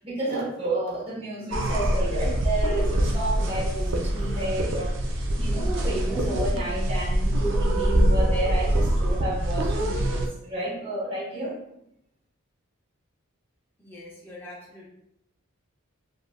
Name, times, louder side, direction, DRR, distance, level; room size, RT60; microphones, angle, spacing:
voice 1, 0.0-11.6, right 2 dB, 25° right, -5 dB, 0.7 m, -31 dB
sound 1, 1.5-10.3, right 1 dB, 55° right, 0.4 m, -24 dB
voice 2, 13.8-14.9, left 1 dB, 10° left, -6 dB, 0.5 m, -44 dB
3.3 x 2.4 x 2.2 m, 0.78 s
head